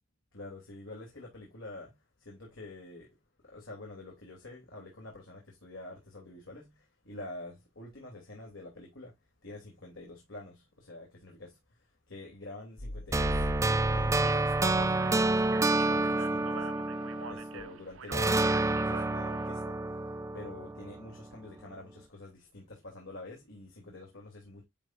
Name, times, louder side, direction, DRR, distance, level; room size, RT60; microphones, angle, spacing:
voice 1, 0.3-3.2 3.4-9.1 9.4-13.5 13.9-16.7 17.1-19.8 20.1-24.6, left 2 dB, 85° left, 3.0 m, -47 dB
sound 1, 12.8-15.5, left 1 dB, 40° left, 0.7 m, -38 dB
sound 2, 13.1-17.7 18.1-21.2, right 2 dB, 15° right, 0.4 m, -28 dB
Speech, 14.2-19.5, right 5 dB, 90° right, 1.0 m, -45 dB
10.5 x 4.4 x 2.5 m
head